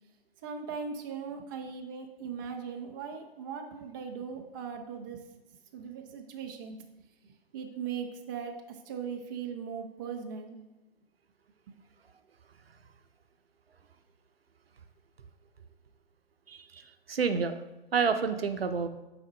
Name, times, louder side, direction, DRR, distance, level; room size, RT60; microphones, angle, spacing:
voice 1, 0.4-5.3 5.7-6.8 7.5-10.6 11.7-11.8, right 6 dB, 20° right, 3 dB, 0.5 m, -39 dB
voice 2, 16.5-17.6 17.9-18.9, right 5 dB, 75° right, 8 dB, 0.7 m, -29 dB
5.9 x 4.2 x 5.1 m, 1.0 s
figure-of-eight pair, 130°, 31 cm